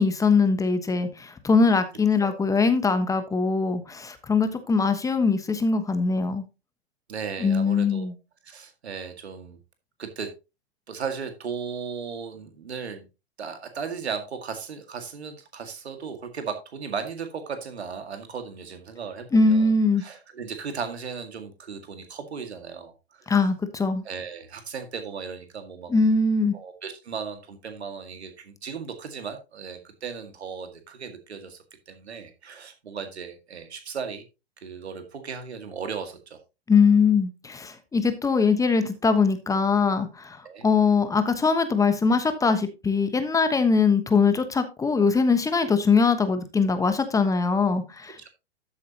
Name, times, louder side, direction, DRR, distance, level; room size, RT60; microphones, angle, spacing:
voice 1, 0.0-6.4 7.4-8.1 19.3-20.0 23.3-24.0 25.9-26.6 36.7-48.2, left 4 dB, 10° left, 1.1 m, -22 dB
voice 2, 7.1-8.1 8.4-9.6 10.0-10.3 10.9-13.1 13.4-19.7 20.0-23.3 24.0-25.9 26.5-31.6 31.9-34.2 34.6-36.4 40.4-40.7 48.2-48.3, right 6 dB, 80° right, 2.0 m, -36 dB
13.0 x 7.2 x 2.9 m
hypercardioid pair, 120°, 32 cm